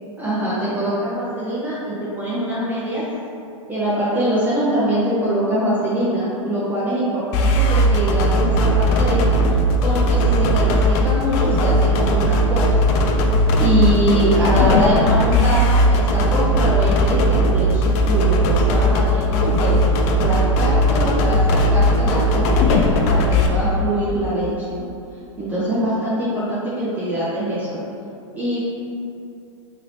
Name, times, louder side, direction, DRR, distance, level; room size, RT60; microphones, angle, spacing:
voice 1, 0.2-3.0 3.7-9.6 9.8-13.1 13.6-19.8 20.2-24.8 25.4-27.8 28.4-28.6, right 1 dB, 10° right, -10 dB, 0.6 m, -23 dB
sound 1, 7.3-23.5, equal, 35° left, 0.3 m, -17 dB
2.8 x 2.7 x 3.2 m, 2.6 s
hypercardioid pair, 105°, 17 cm